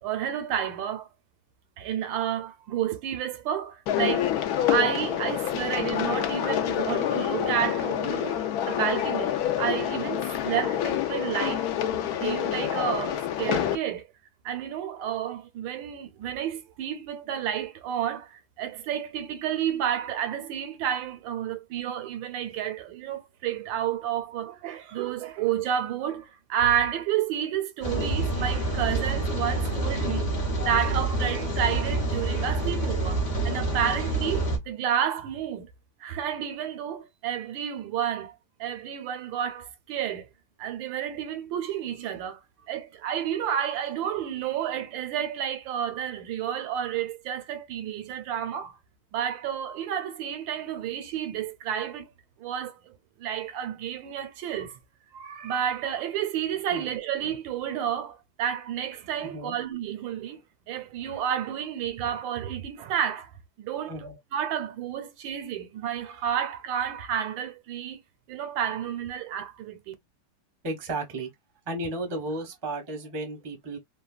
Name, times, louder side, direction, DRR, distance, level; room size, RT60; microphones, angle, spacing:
voice 1, 0.0-1.1 1.8-4.3 4.7-8.4 8.7-11.7 12.1-14.1 14.4-30.3 30.6-35.7 36.0-38.3 38.6-40.3 40.6-42.4 42.7-48.8 49.1-52.1 52.4-54.8 55.1-63.3 63.6-63.9 64.3-68.0 68.3-69.9, right 9 dB, 80° right, 1.3 m, -30 dB
sound 1, 3.9-13.8, left 10 dB, 75° left, 0.8 m, -27 dB
Rain, 27.8-34.6, right 2 dB, 45° left, 0.5 m, -27 dB
voice 2, 59.2-59.6 63.9-64.2 70.6-71.3 71.7-73.8, right 2 dB, 25° right, 0.5 m, -34 dB
3.2 x 2.2 x 2.3 m
omnidirectional pair, 2.1 m